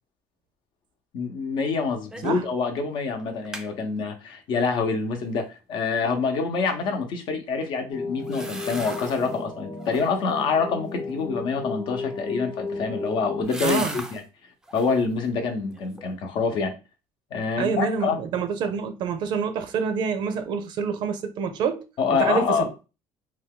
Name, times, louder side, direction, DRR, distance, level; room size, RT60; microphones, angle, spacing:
voice 1, 1.1-14.2 14.7-16.7 17.3-18.2 22.0-22.7, left 5 dB, 60° left, 0.8 m, -26 dB
sound 1, 2.1-2.4 2.8-2.9 3.2-3.7 8.2-9.4 9.8-10.3 12.3-14.2 14.6-15.1 15.5-16.2 16.5-16.6, right 1 dB, 5° right, 0.4 m, -38 dB
sound 2, 7.9-13.4, left 4 dB, 20° left, 1.0 m, -34 dB
voice 2, 13.6-14.0 17.6-21.8 22.1-22.7, right 6 dB, 65° right, 0.5 m, -27 dB
2.7 x 2.3 x 3.6 m
cardioid pair, 115°, 9 cm